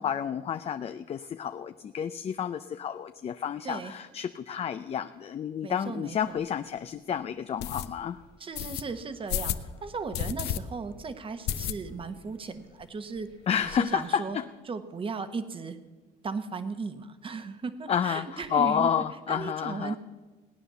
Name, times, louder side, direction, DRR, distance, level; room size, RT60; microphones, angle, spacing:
voice 1, 0.0-8.2 13.5-14.4 17.9-20.0, left 8 dB, 35° left, 10 dB, 0.5 m, -30 dB
voice 2, 5.6-6.4 8.4-13.3 13.8-14.4 14.7-15.8 16.2-18.9 19.3-20.0, right 4 dB, 30° right, 10 dB, 1.2 m, -36 dB
sound 1, 6.2-6.3 6.8-6.9 7.6-7.9 8.6-8.8 9.3-9.7 10.1-10.6 10.9-11.0 11.5-12.1 12.5-12.6 12.8-12.9 13.2-13.8, left 11 dB, 85° left, 0.8 m, -32 dB
18.0 x 9.7 x 6.9 m, 1.3 s
cardioid pair, 110°, 17 cm